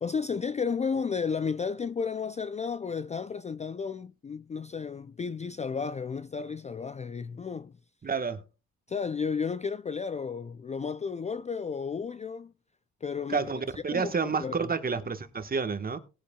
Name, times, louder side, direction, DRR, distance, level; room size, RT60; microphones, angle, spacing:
voice 1, 0.0-7.8 8.9-12.5 13.0-13.5 13.9-14.6, left 5 dB, 25° left, 0.4 m, -33 dB
voice 2, 8.0-8.4 13.3-16.0, right 5 dB, 30° right, 1.4 m, -30 dB
19.0 x 8.4 x 2.3 m
cardioid pair, 90°, 30 cm